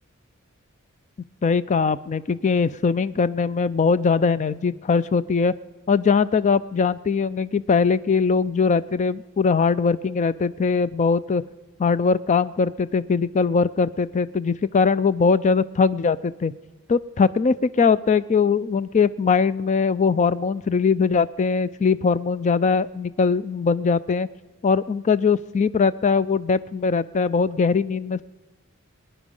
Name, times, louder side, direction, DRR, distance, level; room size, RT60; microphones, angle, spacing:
voice 1, 1.4-5.5 5.9-11.4 11.8-16.5 16.9-24.3 24.6-28.2, left 5 dB, 35° left, 16 dB, 0.4 m, -21 dB
21.0 x 9.9 x 5.4 m, 1.2 s
head